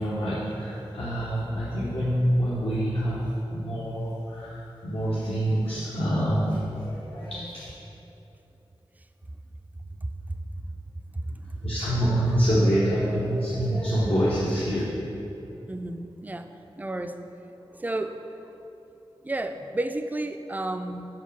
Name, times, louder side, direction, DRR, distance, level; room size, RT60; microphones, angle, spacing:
voice 1, 0.0-3.2 3.5-7.8 11.6-14.8, equal, 70° left, -9 dB, 0.9 m, -26 dB
voice 2, 11.1-11.6 15.7-16.5 16.8-17.2 17.7-18.2 19.2-21.1, right 2 dB, 15° right, 7 dB, 0.3 m, -32 dB
4.6 x 4.6 x 5.7 m, 3.0 s
wide cardioid pair, 55°, 10 cm